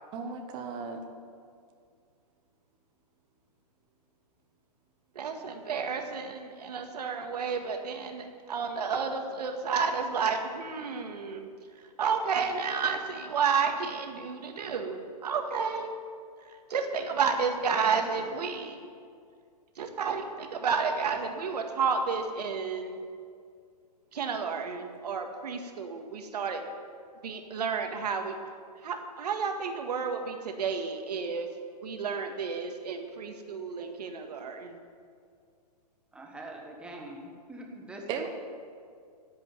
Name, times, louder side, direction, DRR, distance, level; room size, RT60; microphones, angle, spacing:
voice 1, 0.1-1.0 38.1-38.3, right 6 dB, 20° right, 4 dB, 1.1 m, -35 dB
voice 2, 5.1-11.5 12.0-15.9 16.7-18.8 19.8-23.0 24.1-26.6 27.2-28.3 28.8-31.5 31.8-34.8, right 5 dB, 75° right, 4 dB, 1.9 m, -31 dB
voice 3, 17.7-18.3 36.1-38.3, right 1 dB, 5° right, 0 dB, 1.4 m, -43 dB
11.5 x 8.3 x 9.4 m, 2.2 s
hypercardioid pair, 155°, 21 cm